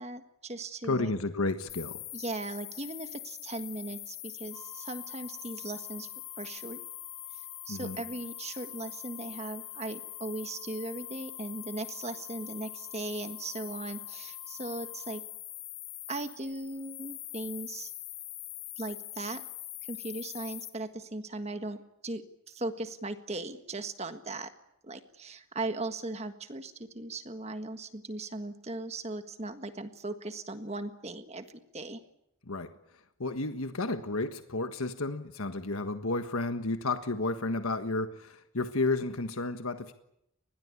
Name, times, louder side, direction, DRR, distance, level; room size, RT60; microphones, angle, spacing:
voice 1, 0.0-1.1 2.1-6.1 6.4-6.8 7.3-15.2 16.1-17.9 18.8-19.4 19.9-24.5 24.8-32.0, right 2 dB, 30° right, 8 dB, 1.6 m, -38 dB
voice 2, 0.8-2.0 7.7-8.0 32.5-32.7 33.2-39.9, left 2 dB, 85° left, 8 dB, 1.5 m, -32 dB
sound 1, 1.7-20.7, left 15 dB, 50° left, 2.7 m, -43 dB
sound 2, 4.5-15.3, right 7 dB, 5° left, 5.0 m, -57 dB
27.0 x 21.0 x 8.5 m, 0.79 s
head